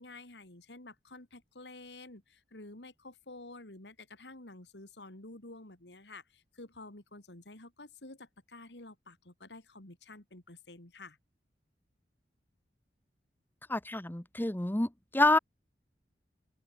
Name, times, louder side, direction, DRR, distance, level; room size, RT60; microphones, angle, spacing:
voice 1, 0.0-11.2, left 2 dB, 80° left, 3.2 m, -50 dB
voice 2, 13.7-15.4, left 2 dB, 10° left, 0.9 m, -28 dB
head